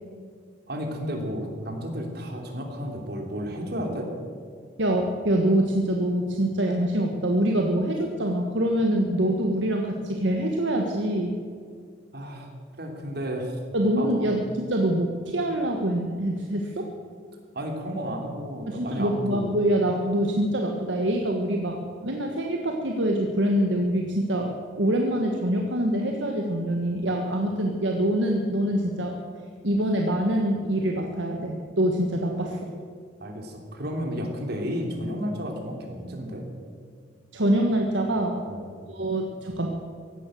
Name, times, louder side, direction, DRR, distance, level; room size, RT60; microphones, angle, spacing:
voice 1, 0.7-4.1 12.1-12.5 12.8-13.6 14.0-14.3 17.5-19.5 33.2-36.4 38.4-38.7, equal, 60° right, 2 dB, 3.1 m, -32 dB
voice 2, 4.8-11.4 13.7-16.9 18.7-24.5 24.8-29.1 29.6-32.7 37.3-38.4 38.9-39.7, right 1 dB, 75° right, 2 dB, 1.5 m, -25 dB
16.0 x 11.5 x 7.7 m, 2.1 s
head